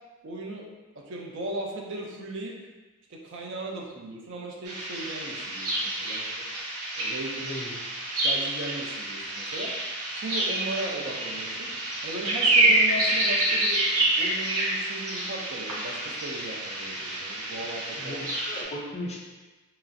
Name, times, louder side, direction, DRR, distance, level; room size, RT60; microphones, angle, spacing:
voice 1, 0.2-0.7 1.0-2.6 3.1-6.3 6.9-7.5 8.1-9.7 10.1-11.7 12.0-13.8 14.2-18.2, right 1 dB, 55° right, -1 dB, 0.4 m, -37 dB
sound 1, 4.7-18.6, right 2 dB, 90° right, 0.7 m, -28 dB
voice 2, 7.4-7.8 18.0-19.2, left 1 dB, 30° left, -3 dB, 0.4 m, -37 dB
2.9 x 2.4 x 2.5 m, 1.2 s
head